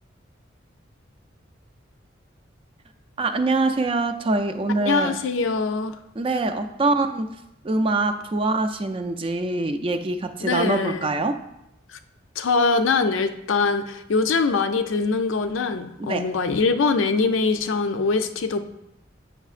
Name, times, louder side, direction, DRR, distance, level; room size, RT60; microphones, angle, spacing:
voice 1, 3.2-5.2 6.2-7.3 7.6-11.4 16.0-16.3, right 2 dB, 30° right, 7 dB, 0.3 m, -24 dB
voice 2, 4.8-6.0 10.4-11.1 11.9-12.0 12.4-18.6, left 4 dB, 85° left, 8 dB, 0.4 m, -23 dB
8.1 x 5.5 x 2.4 m, 0.84 s
head